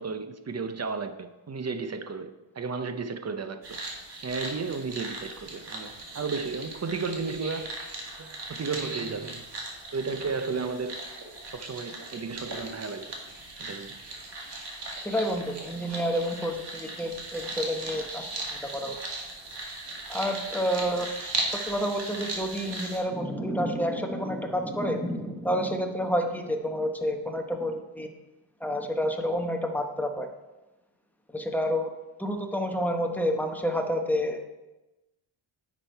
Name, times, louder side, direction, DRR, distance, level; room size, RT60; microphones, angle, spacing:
voice 1, 0.0-3.8 4.2-7.7 8.2-9.4 9.9-11.1 11.5-13.1 13.6-14.0, right 4 dB, 30° right, 9 dB, 0.6 m, -33 dB
sound 1, 3.6-23.0, right 2 dB, 55° right, 2.0 m, -38 dB
voice 2, 15.0-19.0 20.1-21.4 21.7-28.1 28.6-30.3 31.3-31.9 32.2-34.4, equal, 5° left, 3 dB, 0.9 m, -29 dB
9.9 x 6.3 x 4.5 m, 1.1 s
wide cardioid pair, 115°, 49 cm